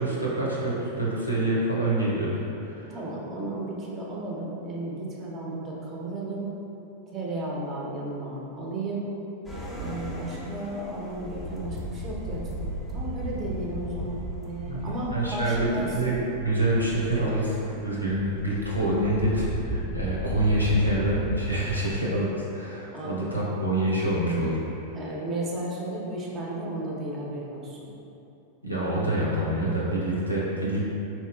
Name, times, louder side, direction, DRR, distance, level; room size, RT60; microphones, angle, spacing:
voice 1, 0.0-2.9 14.7-14.8 15.1-15.7 15.9-17.6 17.8-24.6 28.6-30.8, right 1 dB, 90° left, -6 dB, 0.7 m, -26 dB
voice 2, 2.9-6.5 7.1-9.1 9.7-16.0 21.8-21.9 22.9-23.2 24.9-27.9, right 2 dB, 30° right, -4 dB, 0.7 m, -34 dB
sound 1, 9.4-21.8, equal, 10° left, 0.7 m, -35 dB
4.2 x 2.9 x 2.2 m, 2.8 s
figure-of-eight pair, 90°, 0 cm